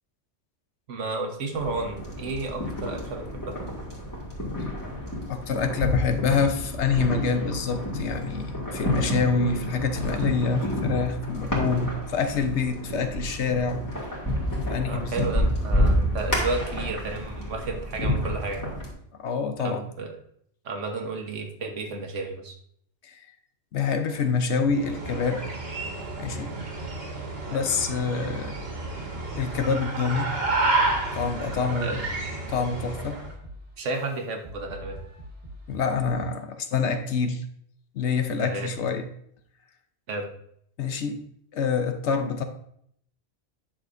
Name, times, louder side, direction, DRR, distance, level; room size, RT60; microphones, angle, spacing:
voice 1, 0.9-3.5 14.9-18.7 19.6-20.1 20.6-22.5 27.5-27.8 31.8-32.0 33.8-35.0 38.4-38.7 40.1-40.3, right 3 dB, 75° right, 3 dB, 1.4 m, -32 dB
sound 1, 1.5-18.9, equal, 15° left, 2.0 m, -29 dB
voice 2, 5.3-13.8 14.7-15.3 19.2-19.8 23.0-23.2 23.7-25.5 26.2-26.5 27.5-28.6 29.4-30.3 31.1-32.1 32.5-33.2 35.7-37.4 37.9-39.0 40.8-41.2 41.5-42.4, left 5 dB, 70° left, 7 dB, 1.0 m, -26 dB
sound 2, 24.7-33.3, right 2 dB, 55° right, 1.6 m, -30 dB
sound 3, 28.4-29.7 30.4-36.4, equal, 35° right, 1.7 m, -43 dB
9.8 x 6.0 x 2.6 m, 0.68 s
omnidirectional pair, 1.3 m